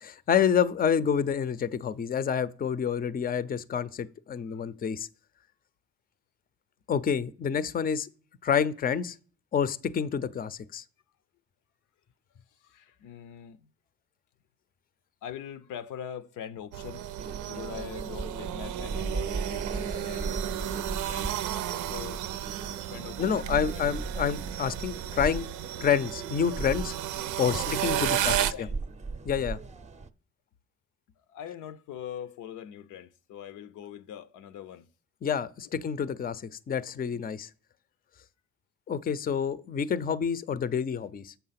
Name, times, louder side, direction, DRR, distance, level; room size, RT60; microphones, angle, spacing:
voice 1, 0.0-5.1 6.9-8.1 8.4-9.2 9.5-10.8 23.2-25.5 25.8-26.9 27.4-28.4 29.3-29.6 35.2-37.5 38.9-41.3, left 7 dB, 30° left, 0.5 m, -28 dB
voice 2, 12.6-13.7 15.2-17.0 17.5-21.4 21.9-22.2 22.9-23.7 27.5-28.8 31.2-34.9 37.1-37.3, left 9 dB, 85° left, 0.6 m, -42 dB
sound 1, 16.7-28.5, right 12 dB, 85° right, 0.6 m, -33 dB
sound 2, 17.2-30.1, right 3 dB, 25° right, 0.6 m, -38 dB
7.1 x 5.6 x 5.7 m
cardioid pair, 90°, 30 cm